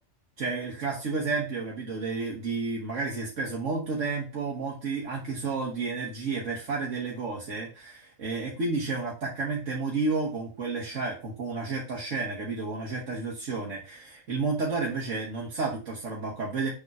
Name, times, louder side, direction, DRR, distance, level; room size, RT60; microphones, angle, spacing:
voice 1, 0.4-16.7, right 4 dB, 75° right, -3 dB, 1.8 m, -31 dB
6.8 x 3.8 x 4.7 m, 0.32 s
omnidirectional pair, 1.3 m